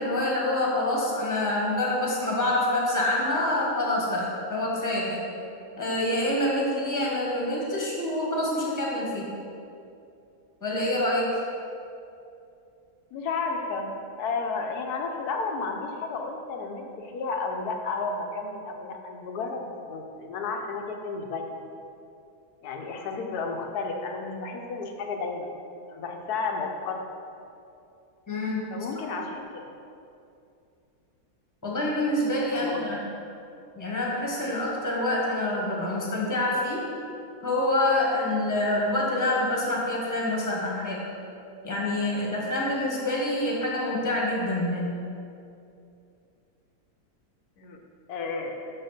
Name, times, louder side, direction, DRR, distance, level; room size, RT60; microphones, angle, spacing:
voice 1, 0.0-5.2 5.8-9.3 10.6-11.4 28.3-28.7 31.6-33.0 33.8-36.9 37.4-41.0 41.6-45.0, left 1 dB, 10° left, -4 dB, 1.4 m, -26 dB
voice 2, 13.1-21.5 22.6-25.5 25.9-27.1 28.7-29.6 32.5-32.9 47.6-47.8 48.1-48.6, left 4 dB, 75° left, 3 dB, 1.3 m, -32 dB
6.9 x 5.6 x 5.9 m, 2.6 s
omnidirectional pair, 1.7 m